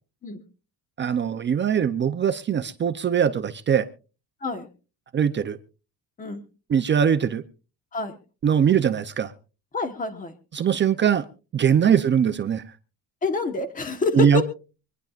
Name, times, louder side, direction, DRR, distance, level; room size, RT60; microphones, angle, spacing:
voice 1, 1.0-3.9 5.1-5.6 6.7-7.4 8.4-9.3 10.5-11.2 11.5-12.6 14.1-14.4, right 8 dB, 30° right, 9 dB, 0.6 m, -21 dB
voice 2, 9.7-10.3 11.8-12.0 13.2-14.4, left 4 dB, 20° left, 8 dB, 1.3 m, -27 dB
25.0 x 10.5 x 2.5 m, 0.34 s
cardioid pair, 170°, 40 cm